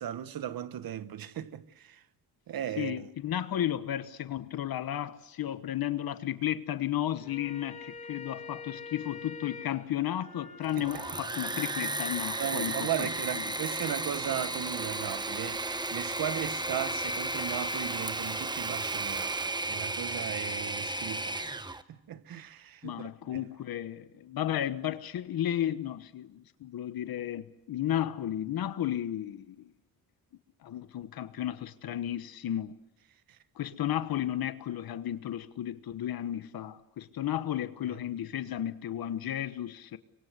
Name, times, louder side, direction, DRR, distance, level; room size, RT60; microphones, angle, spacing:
voice 1, 0.0-2.0 2.5-3.1 10.8-10.9 12.4-19.3 19.7-21.6 21.9-23.4, right 10 dB, 70° right, 1.2 m, -36 dB
voice 2, 2.8-13.1 13.4-13.5 22.8-29.7 30.6-32.7 33.6-40.0, left 11 dB, 75° left, 1.2 m, -33 dB
sound 1, 7.1-12.7, left 4 dB, 20° left, 5.5 m, -46 dB
Engine / Mechanisms, 10.6-21.8, right 2 dB, 10° right, 1.0 m, -34 dB
25.0 x 23.0 x 8.1 m
wide cardioid pair, 135°, 36 cm